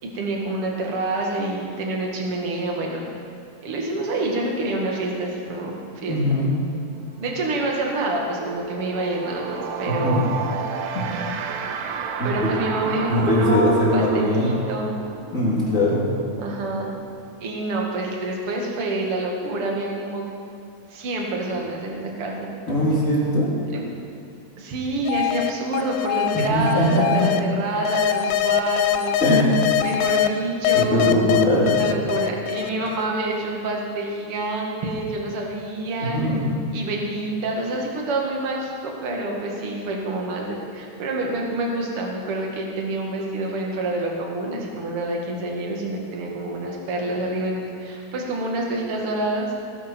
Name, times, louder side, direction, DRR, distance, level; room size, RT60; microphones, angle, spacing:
voice 1, 0.0-3.0 3.6-6.2 7.2-10.3 12.2-15.0 16.4-16.9 17.4-20.3 20.9-22.5 23.7-23.8 24.6-29.2 29.8-31.1 31.7-36.2 36.7-49.5, right 2 dB, 45° right, -1 dB, 2.5 m, -27 dB
voice 2, 6.1-6.5 10.0-10.2 10.9-11.0 12.2-12.5 12.8-14.5 15.3-16.1 22.7-23.5 26.3-27.0 29.2-29.6 30.7-31.8 36.1-36.5, equal, 25° left, -6 dB, 3.3 m, -21 dB
sound 1, 6.7-6.9 7.2-17.8, right 6 dB, 80° right, 2.5 m, -33 dB
sound 2, 25.1-27.4 27.8-30.3 30.6-33.0, left 12 dB, 90° left, 1.7 m, -23 dB
19.0 x 11.0 x 4.5 m, 2.6 s
omnidirectional pair, 4.0 m